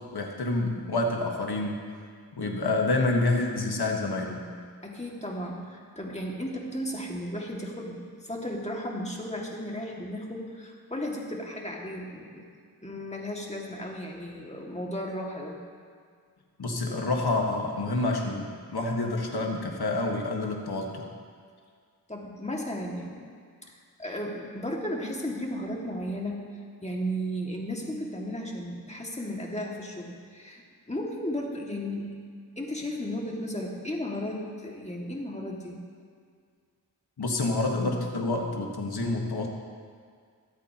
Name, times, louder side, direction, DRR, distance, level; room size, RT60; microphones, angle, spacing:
voice 1, 0.1-1.8 2.4-4.4 16.6-21.1 37.2-39.5, left 2 dB, 80° left, 1 dB, 1.6 m, -28 dB
voice 2, 4.8-12.5 12.8-15.6 22.1-23.2 23.7-26.5 26.8-30.6 30.9-32.2 32.6-35.8, equal, 20° left, -2 dB, 2.1 m, -34 dB
23.5 x 8.4 x 3.0 m, 2.1 s
wide cardioid pair, 60°, 37 cm